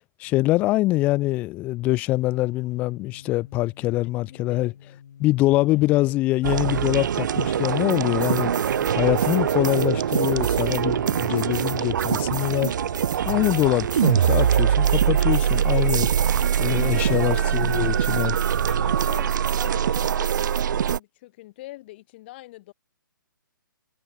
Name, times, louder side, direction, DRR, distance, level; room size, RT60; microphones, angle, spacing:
voice 1, 0.2-4.7 5.2-8.5 8.9-12.7 13.2-16.1 16.6-18.3, left 18 dB, 15° left, 0.4 m, -24 dB
sound 1, 2.0-20.3, left 8 dB, 55° left, 1.4 m, -48 dB
voice 2, 4.0-4.7 5.6-6.1 17.0-17.6 17.9-19.3 19.6-22.7, left 18 dB, 30° left, 2.5 m, -44 dB
sound 2, 6.4-21.0, right 9 dB, 60° right, 0.4 m, -23 dB
hypercardioid pair, 160°, 11 cm